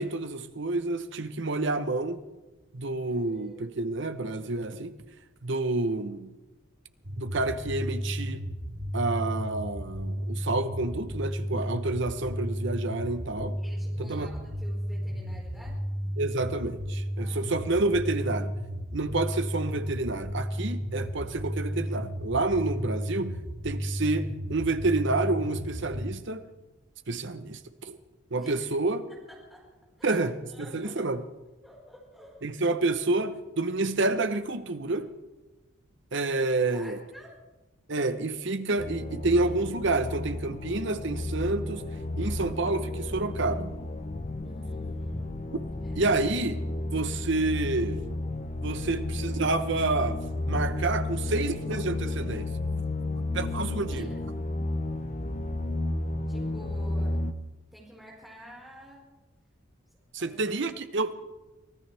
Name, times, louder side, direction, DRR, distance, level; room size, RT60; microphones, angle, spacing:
voice 1, 0.0-2.2 2.7-4.9 5.4-6.3 7.2-8.4 8.9-13.6 14.0-14.3 16.2-18.6 18.9-26.5 27.1-28.0 28.3-29.1 30.0-31.2 32.4-35.1 36.1-37.0 37.9-41.9 42.2-43.8 45.9-48.0 48.6-52.8 53.3-54.1 60.1-61.1, right 2 dB, 60° right, 0.9 m, -29 dB
voice 2, 3.1-4.2 13.6-15.8 17.2-17.4 28.4-28.7 29.3-29.7 30.0-30.2 30.5-31.0 31.6-32.4 36.7-37.4 44.4-45.4 45.8-46.0 53.5-54.2 56.3-57.2 57.7-59.1 60.2-60.6, equal, ahead, 4.7 m, -50 dB
sound 1, 7.0-26.1, equal, 80° right, 3.8 m, -33 dB
Danger Approaching, 38.8-57.3, left 2 dB, 35° left, 0.7 m, -32 dB
24.5 x 16.5 x 3.4 m
head